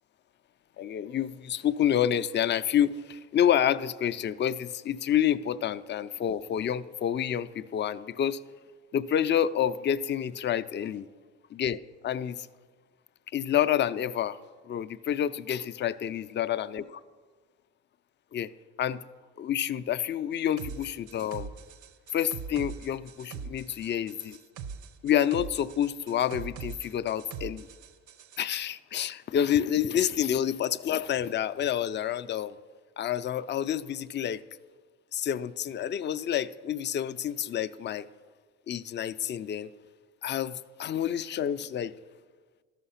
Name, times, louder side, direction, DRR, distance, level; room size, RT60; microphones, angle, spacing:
voice 1, 0.8-8.4 8.9-11.1 11.5-12.5 13.3-14.4 14.7-16.8 18.3-18.5 18.8-19.0 19.4-21.5 22.1-24.4 25.0-27.7 28.4-32.6 33.0-34.4 35.1-38.1 38.7-39.7 40.2-41.9, left 10 dB, 40° left, 13 dB, 0.4 m, -28 dB
sound 1, 20.6-28.4, right 6 dB, 75° right, 0.6 m, -42 dB
13.0 x 5.7 x 5.6 m, 1.5 s
cardioid pair, 90°, 30 cm